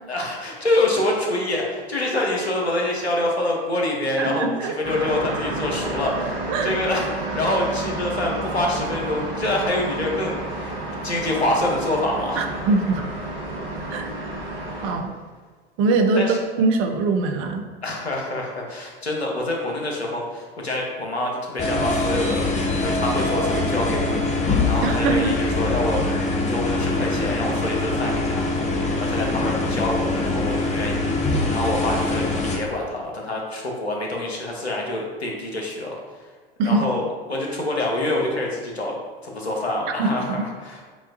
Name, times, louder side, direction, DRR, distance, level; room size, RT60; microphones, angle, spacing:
voice 1, 0.1-10.7 11.0-12.6 16.1-16.4 17.8-22.5 22.8-24.2 24.7-26.0 26.5-28.5 29.0-36.0 36.6-37.0 37.3-39.0 39.2-40.9, left 1 dB, 90° left, -1 dB, 0.8 m, -26 dB
voice 2, 4.2-4.7 6.5-6.7 12.4-13.1 13.9-14.1 14.8-15.1 15.8-17.7 24.8-25.4 36.6-36.9 40.0-40.4, right 3 dB, 45° right, 5 dB, 0.6 m, -22 dB
sound 1, 4.8-14.9, right 2 dB, 65° right, 1.2 m, -30 dB
sound 2, 21.6-32.6, left 2 dB, 20° left, 0.7 m, -23 dB
7.0 x 2.4 x 2.5 m, 1.4 s
figure-of-eight pair, 80°, 31 cm